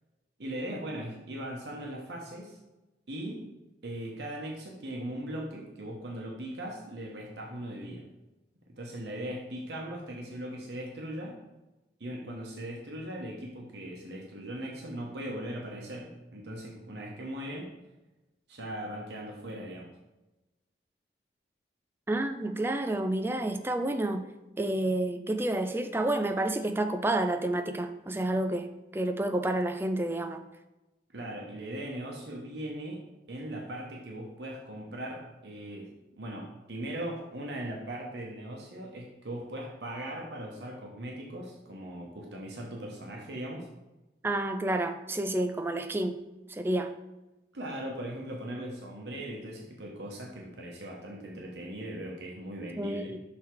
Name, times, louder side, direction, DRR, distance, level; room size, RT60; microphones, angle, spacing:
voice 1, 0.4-2.6 3.1-3.5 3.8-8.0 8.7-11.4 12.0-17.7 18.5-19.9 31.1-33.0 33.3-35.9 36.2-43.7 47.5-53.2, right 1 dB, 70° right, -1 dB, 1.0 m, -39 dB
voice 2, 22.1-24.3 24.6-28.7 28.9-30.4 44.2-46.2 46.5-46.9 52.8-53.2, right 1 dB, 15° right, 7 dB, 0.3 m, -29 dB
6.4 x 3.5 x 4.6 m, 1.0 s
head